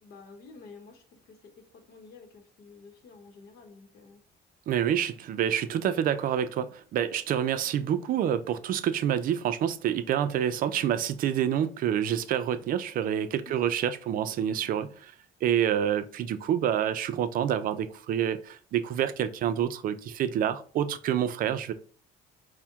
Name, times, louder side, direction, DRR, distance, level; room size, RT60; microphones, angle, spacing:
voice 1, 0.0-4.2, left 4 dB, 65° left, 0.8 m, -51 dB
voice 2, 4.7-15.1 15.4-21.7, right 9 dB, 55° right, 0.4 m, -27 dB
4.3 x 2.1 x 3.5 m
cardioid pair, 110°, 17 cm